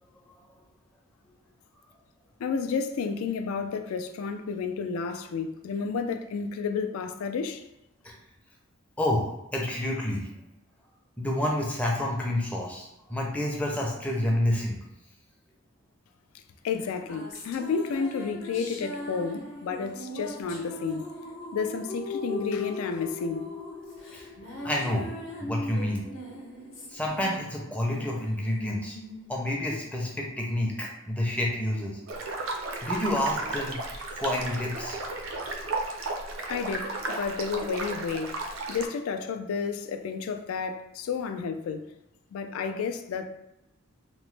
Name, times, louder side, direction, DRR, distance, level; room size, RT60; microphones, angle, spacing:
voice 1, 2.4-7.6 16.6-21.1 21.5-23.5 36.5-38.4 38.7-41.9 42.3-43.3, left 5 dB, 80° left, 0.3 m, -31 dB
voice 2, 9.0-10.3 11.2-14.8 24.1-24.2 24.6-25.1 25.4-26.1 26.9-29.0 29.3-32.0 32.8-33.8 34.2-35.0, left 1 dB, 5° left, 0.4 m, -29 dB
sound 1, 16.8-30.5, left 2 dB, 55° left, 0.7 m, -39 dB
sound 2, 32.1-38.9, right 2 dB, 70° right, 0.4 m, -34 dB
2.9 x 2.1 x 3.1 m
head